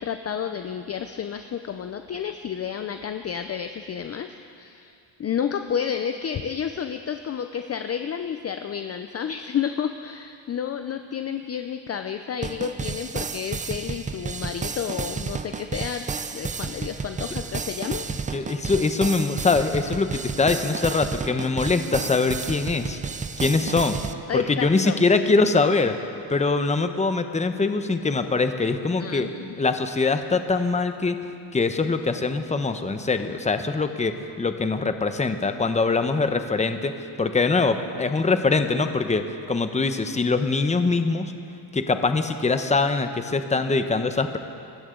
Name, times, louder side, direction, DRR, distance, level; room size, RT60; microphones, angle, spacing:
voice 1, 0.0-4.9 5.2-16.0 16.3-18.0 24.3-25.0 29.0-29.6, left 8 dB, 30° left, 8 dB, 0.6 m, -30 dB
sound 1, 12.4-24.1, right 5 dB, 20° right, 0.4 m, -32 dB
voice 2, 18.3-23.0 23.4-24.0 24.3-26.0 26.3-29.3 29.6-31.2 31.5-36.9 37.2-41.3 41.7-44.4, left 3 dB, 15° left, 8 dB, 0.8 m, -23 dB
24.0 x 13.0 x 3.8 m, 2.5 s
cardioid pair, 110°, 47 cm